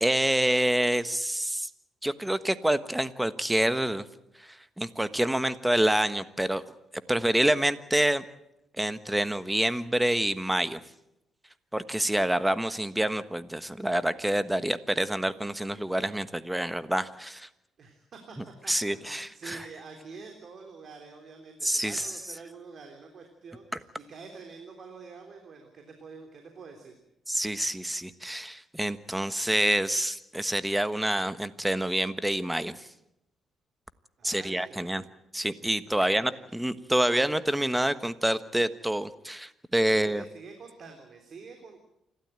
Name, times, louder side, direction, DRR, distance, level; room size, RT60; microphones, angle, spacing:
voice 1, 0.0-1.7 2.0-4.0 4.4-6.6 7.1-8.2 8.8-10.8 11.7-17.5 18.7-19.6 21.6-22.2 27.3-32.9 34.2-35.0 35.3-40.2, right 1 dB, 5° right, 13 dB, 1.3 m, -27 dB
voice 2, 17.8-18.4 18.6-27.0 34.2-35.1 36.1-36.4 39.9-41.8, right 4 dB, 55° right, 4 dB, 3.5 m, -47 dB
28.5 x 13.0 x 8.9 m, 0.84 s
cardioid pair, 90°, 0 cm